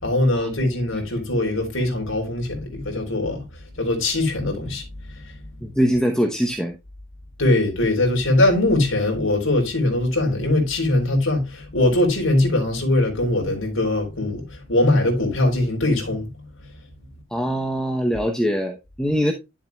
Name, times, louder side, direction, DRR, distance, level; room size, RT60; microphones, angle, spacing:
voice 1, 0.0-3.4 3.8-4.8 7.4-16.3, left 1 dB, 85° left, 3.8 m, -21 dB
voice 2, 5.6-6.8 17.3-19.3, equal, 5° left, 0.9 m, -22 dB
11.5 x 7.2 x 2.3 m
head